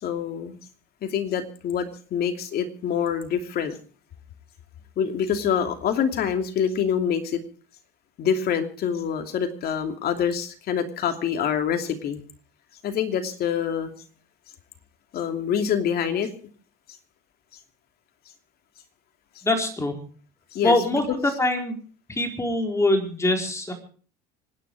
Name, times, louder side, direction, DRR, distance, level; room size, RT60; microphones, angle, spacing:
voice 1, 0.0-0.6 1.0-3.8 5.0-7.4 8.2-12.2 12.8-13.9 15.1-16.3 20.5-21.0, left 8 dB, 55° left, 6 dB, 2.8 m, -26 dB
voice 2, 19.4-19.9 20.6-21.7 22.1-23.7, left 2 dB, 15° left, 4 dB, 4.4 m, -23 dB
26.0 x 10.0 x 4.8 m, 0.41 s
supercardioid pair, 100°, 19 cm